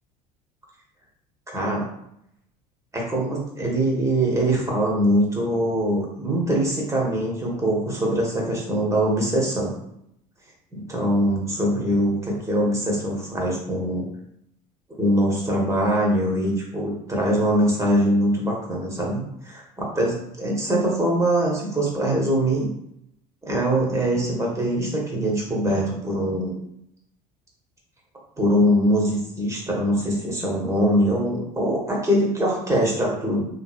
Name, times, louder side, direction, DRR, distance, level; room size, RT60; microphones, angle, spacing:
voice 1, 1.5-1.9 2.9-9.7 10.7-14.1 15.0-22.7 23.4-26.6 28.4-33.4, right 1 dB, 15° right, -3 dB, 1.4 m, -23 dB
3.0 x 3.0 x 2.4 m, 0.76 s
hypercardioid pair, 65°, 21 cm